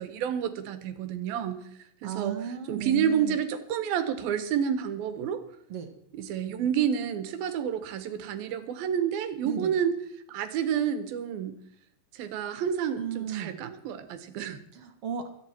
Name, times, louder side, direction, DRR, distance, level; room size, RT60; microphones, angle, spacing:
voice 1, 0.0-1.6 2.0-2.4 2.7-5.4 6.1-9.9 10.3-11.5 12.1-14.6, right 8 dB, 80° right, 11 dB, 3.0 m, -29 dB
voice 2, 2.0-3.4 5.7-5.9 9.4-9.7 13.0-13.6 14.7-15.3, right 8 dB, 50° right, 5 dB, 2.1 m, -34 dB
25.0 x 9.4 x 4.4 m, 0.69 s
omnidirectional pair, 4.1 m